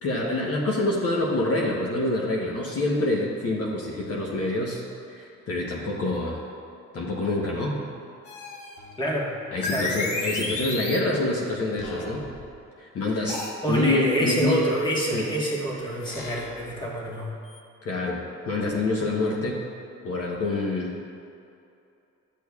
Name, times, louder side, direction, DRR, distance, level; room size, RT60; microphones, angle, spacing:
voice 1, 0.0-6.4 6.9-7.8 9.5-12.3 12.8-14.7 15.1-15.3 17.8-19.6 20.0-21.0, left 2 dB, 50° left, -2 dB, 1.0 m, -27 dB
sound 1, 8.3-9.0 9.6-11.1 11.8-12.5 13.3-13.6 14.3-14.4 15.1-15.2 16.0-16.7 17.5-17.6, left 3 dB, 85° left, 1.1 m, -33 dB
voice 2, 9.0-9.3 9.7-10.1 13.1-13.3 13.6-17.3, equal, 15° left, -4 dB, 1.5 m, -26 dB
12.0 x 6.4 x 2.4 m, 2.6 s
cardioid pair, 90°, 30 cm